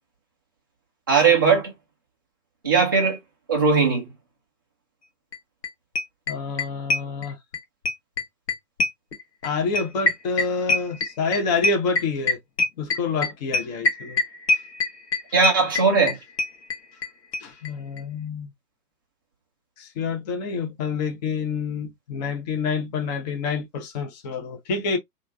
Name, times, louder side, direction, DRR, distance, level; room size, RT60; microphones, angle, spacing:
voice 1, 1.1-1.7 2.6-3.2 3.5-4.1 15.3-16.2, right 5 dB, 15° right, 0.4 m, -19 dB
sound 1, 5.3-5.4 5.6-5.7 5.9-7.6 7.8-17.1 17.3-17.4 17.6-17.7 18.0-18.1, left 2 dB, 80° left, 1.1 m, -24 dB
voice 2, 6.3-7.4 9.4-12.4 12.8-14.2 17.4-18.5 19.8-25.0, left 4 dB, 25° left, 0.7 m, -27 dB
3.1 x 2.5 x 2.2 m
figure-of-eight pair, 125°, 49 cm